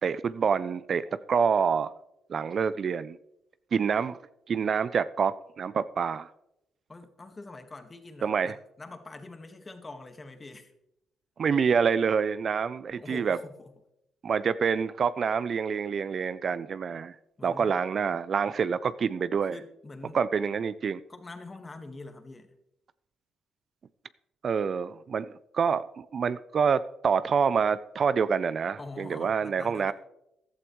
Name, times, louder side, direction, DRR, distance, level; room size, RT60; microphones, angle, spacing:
voice 1, 0.0-1.9 2.3-3.2 3.7-4.2 4.5-6.3 8.2-8.5 11.4-13.4 14.2-17.2 17.4-19.6 20.1-21.0 24.4-29.9, right 6 dB, 50° right, 16 dB, 0.4 m, -27 dB
voice 2, 6.9-10.7 13.0-13.7 17.4-17.8 19.5-20.2 21.1-22.5 28.8-29.9, left 3 dB, 25° left, 7 dB, 1.5 m, -44 dB
15.0 x 12.0 x 3.1 m, 0.83 s
cardioid pair, 90°, 0 cm